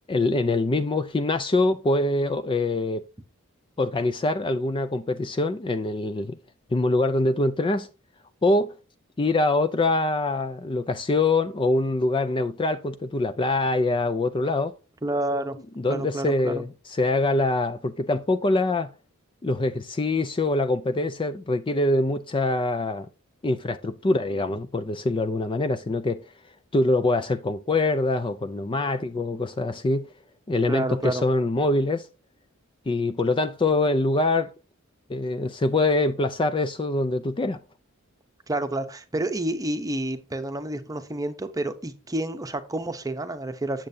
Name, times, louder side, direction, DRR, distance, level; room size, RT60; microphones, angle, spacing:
voice 1, 0.1-3.1 3.8-6.4 6.7-7.9 8.4-8.7 9.2-14.8 15.8-18.9 19.4-23.1 23.4-26.2 26.7-30.1 30.5-32.1 32.9-34.5 35.1-37.6, left 2 dB, 25° left, 0.4 m, -24 dB
voice 2, 15.0-15.6 15.9-16.6 30.7-31.2 38.5-43.9, right 1 dB, 15° right, 0.9 m, -29 dB
8.6 x 7.5 x 2.7 m
head